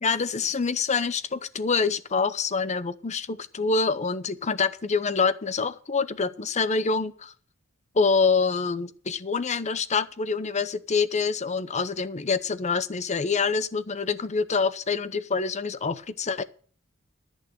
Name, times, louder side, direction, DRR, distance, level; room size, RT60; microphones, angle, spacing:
voice 1, 0.0-7.3 7.9-16.4, left 4 dB, 35° left, 0.7 m, -26 dB
13.5 x 6.5 x 6.5 m
head